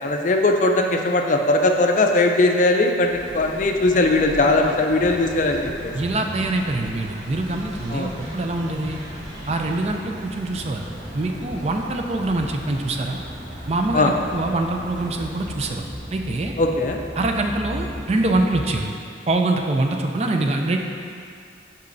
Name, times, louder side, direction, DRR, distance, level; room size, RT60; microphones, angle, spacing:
voice 1, 0.0-5.9 7.9-8.1 13.9-14.1 16.6-17.0, left 2 dB, 40° left, 3 dB, 0.4 m, -19 dB
sound 1, 3.0-15.7, equal, 75° right, 1.3 m, -40 dB
sound 2, 3.1-18.8, equal, ahead, 1.1 m, -38 dB
voice 2, 5.9-9.0 9.5-10.9 11.1-13.2 13.7-16.5 17.2-18.9 19.3-20.8, right 2 dB, 35° right, 3 dB, 0.4 m, -24 dB
8.3 x 5.6 x 2.6 m, 2.4 s
head